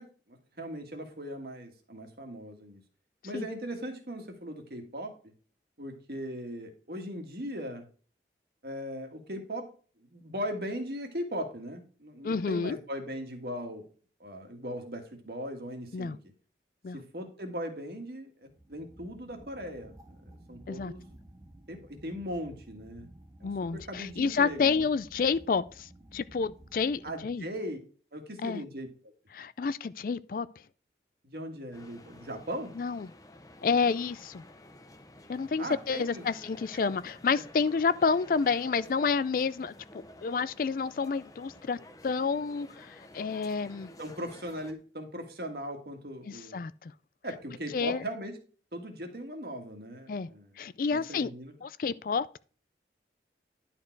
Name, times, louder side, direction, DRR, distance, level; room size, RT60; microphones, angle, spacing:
voice 1, 0.0-2.8 3.2-5.2 5.8-7.9 8.6-9.7 10.1-13.9 14.2-16.2 16.9-21.1 21.7-23.1 23.4-24.8 27.0-27.8 28.1-28.9 31.2-32.7 35.6-36.3 37.3-37.4 44.0-46.6 47.2-48.4 48.7-50.5 50.9-51.5, equal, 60° right, 1.7 m, -39 dB
voice 2, 12.2-12.8 15.9-16.2 16.8-17.0 20.7-20.9 23.4-27.5 28.4-28.6 29.3-30.5 32.8-33.1 33.6-34.4 35.3-39.7 40.2-43.9 46.3-46.9 47.7-48.0 50.1-50.3 50.6-51.3 51.6-52.4, left 5 dB, 50° left, 0.4 m, -29 dB
sound 1, 18.5-27.6, right 1 dB, 20° right, 0.8 m, -54 dB
sound 2, 31.7-44.7, left 1 dB, 20° left, 0.7 m, -52 dB
11.0 x 4.5 x 4.6 m
head